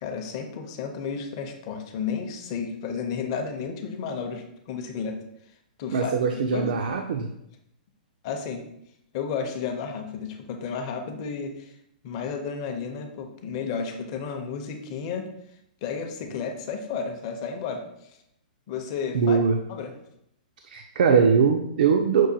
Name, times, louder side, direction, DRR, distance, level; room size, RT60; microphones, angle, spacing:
voice 1, 0.0-5.2 5.8-6.7 8.2-8.6 9.1-11.7 12.0-15.3 15.8-18.1 18.7-19.4 19.7-19.9, left 6 dB, 35° left, 4 dB, 0.5 m, -32 dB
voice 2, 5.9-7.3 19.1-19.6 20.6-22.3, right 6 dB, 65° right, 4 dB, 0.4 m, -21 dB
6.0 x 2.1 x 2.7 m, 0.78 s
hypercardioid pair, 160°, 5 cm